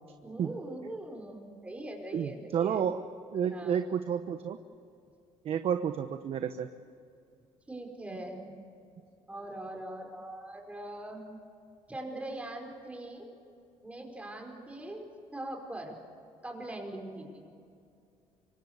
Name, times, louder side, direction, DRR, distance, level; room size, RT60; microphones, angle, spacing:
voice 1, 0.2-2.8 3.5-3.8 7.7-8.5 9.3-11.2 11.9-13.3 13.8-16.0 16.4-17.5, right 1 dB, 10° right, 2 dB, 5.2 m, -41 dB
voice 2, 2.1-3.1 3.3-4.6 5.4-6.7, right 8 dB, 55° right, 8 dB, 1.1 m, -30 dB
26.5 x 24.5 x 8.2 m, 2.5 s
cardioid pair, 130°, 12 cm